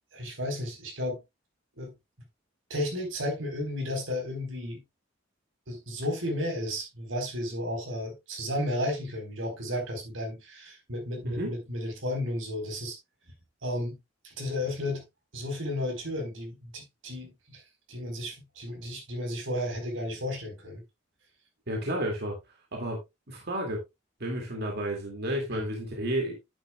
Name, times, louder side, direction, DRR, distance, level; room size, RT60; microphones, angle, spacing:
voice 1, 0.1-1.2 1.8-1.9 2.7-4.8 5.7-13.0 13.6-14.0 14.2-15.0 15.3-17.6 17.9-20.8 25.5-25.7, left 1 dB, 90° right, 4.3 m, -33 dB
voice 2, 21.7-22.4 22.7-23.0 23.3-23.8 24.2-26.3, right 1 dB, 55° right, 2.3 m, -31 dB
10.0 x 9.7 x 2.3 m
head